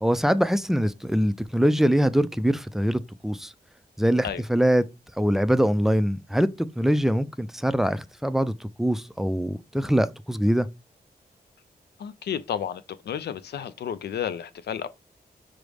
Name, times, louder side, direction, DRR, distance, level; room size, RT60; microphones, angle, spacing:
voice 1, 0.0-3.5 4.0-4.8 5.2-10.7, equal, ahead, 0.3 m, -23 dB
voice 2, 12.0-14.9, left 9 dB, 85° left, 0.4 m, -32 dB
6.1 x 2.0 x 3.3 m
cardioid pair, 75°, 16 cm